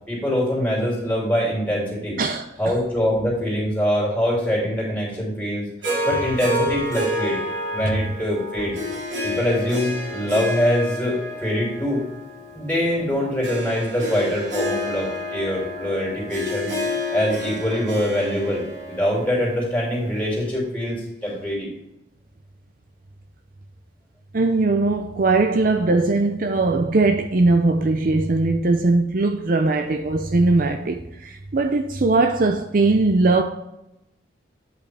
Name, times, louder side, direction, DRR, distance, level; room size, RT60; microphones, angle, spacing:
voice 1, 0.1-2.2 2.6-5.7 6.0-7.4 7.7-8.7 9.2-12.0 12.5-16.7 17.1-21.7, equal, 10° left, 2.9 m, -23 dB
Harp, 5.8-20.2, left 1 dB, 75° right, 2.4 m, -29 dB
voice 2, 24.3-33.4, right 3 dB, 50° right, 0.5 m, -20 dB
8.7 x 5.5 x 3.4 m
head